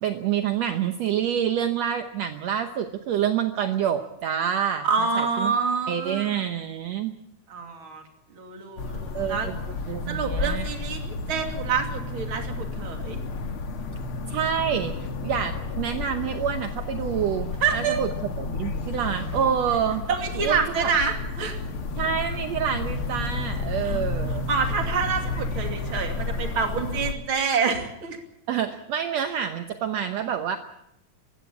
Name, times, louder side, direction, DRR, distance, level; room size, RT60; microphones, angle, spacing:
voice 1, 0.0-4.9 5.2-5.5 5.9-7.2 9.1-9.6 9.9-10.7 14.3-14.9 15.2-18.1 18.4-20.0 20.4-20.9 22.0-24.5 28.5-30.6, right 8 dB, 70° right, 7 dB, 2.0 m, -27 dB
voice 2, 4.8-6.4 7.5-8.0 8.3-9.5 10.1-13.2 17.6-18.0 20.1-21.6 23.8-24.0 24.5-28.2, right 5 dB, 45° right, 4 dB, 3.4 m, -27 dB
sound 1, 8.8-27.1, left 3 dB, 50° left, 2.1 m, -31 dB
21.5 x 16.0 x 8.5 m, 0.83 s
omnidirectional pair, 3.4 m